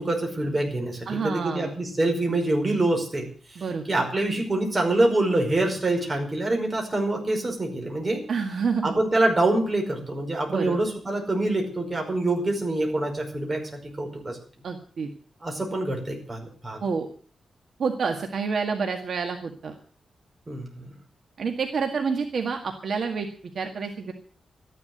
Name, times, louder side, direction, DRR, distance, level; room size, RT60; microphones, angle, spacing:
voice 1, 0.0-3.3 3.6-8.2 8.8-14.4 15.4-16.8 20.5-20.9, right 2 dB, 25° right, 2 dB, 5.2 m, -25 dB
voice 2, 1.1-1.7 3.6-3.8 8.3-8.9 10.5-10.8 14.6-15.1 16.8-17.1 17.8-19.7 21.4-23.3 23.6-24.1, right 5 dB, 60° right, 4 dB, 1.9 m, -28 dB
13.5 x 11.0 x 8.0 m, 0.43 s
wide cardioid pair, 135°, 0 cm